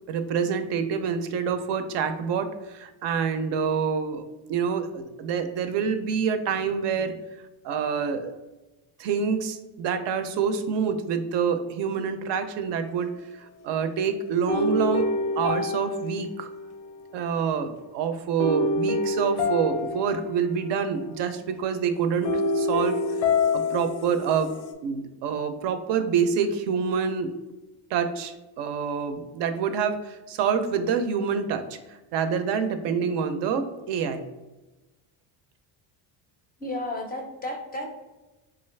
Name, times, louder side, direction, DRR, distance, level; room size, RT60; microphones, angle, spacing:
voice 1, 0.1-4.2 4.5-7.2 7.6-8.3 9.0-16.5 17.1-22.3 22.5-23.0 23.5-24.5 24.8-27.4 27.9-34.2, right 6 dB, 65° right, 8 dB, 0.5 m, -27 dB
sound 1, 14.5-17.0 18.4-20.9 22.2-24.7, left 2 dB, 80° left, 0.6 m, -27 dB
voice 2, 36.6-37.9, left 1 dB, 20° left, 2 dB, 0.4 m, -32 dB
3.8 x 2.4 x 3.2 m, 1.1 s
cardioid pair, 125°, 46 cm